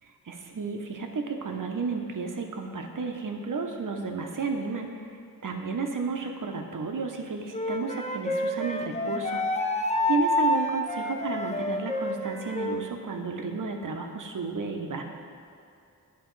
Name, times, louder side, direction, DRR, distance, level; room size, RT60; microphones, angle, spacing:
voice 1, 0.3-15.0, right 4 dB, 55° right, 4 dB, 0.8 m, -32 dB
Wind instrument woodwind instrument, 7.5-12.8, left 1 dB, 20° left, 0.5 m, -28 dB
10.5 x 4.3 x 3.1 m, 2.6 s
cardioid pair, 50°, 39 cm